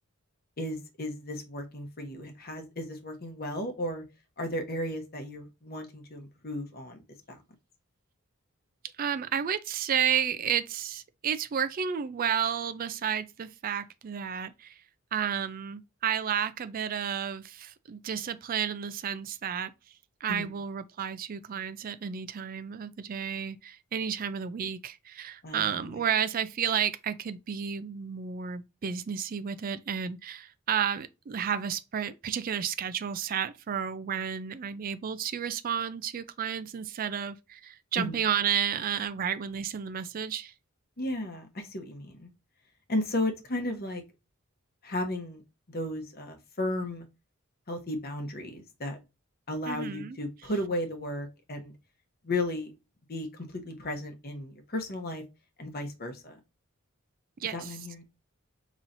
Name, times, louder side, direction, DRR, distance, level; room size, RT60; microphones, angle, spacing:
voice 1, 0.6-4.0 4.4-7.0 7.3-7.4 20.3-20.5 25.4-26.0 38.0-38.2 41.0-42.3 42.9-44.0 44.8-45.4 45.7-47.1 47.7-49.0 49.5-51.7 52.2-52.7 53.1-55.2 55.6-56.4 57.5-58.0, left 1 dB, 45° left, 1.0 m, -34 dB
voice 2, 9.0-14.7 15.1-19.7 20.2-40.5 49.7-50.2 57.4-57.8, right 8 dB, 40° right, 0.3 m, -31 dB
5.6 x 3.0 x 2.5 m
head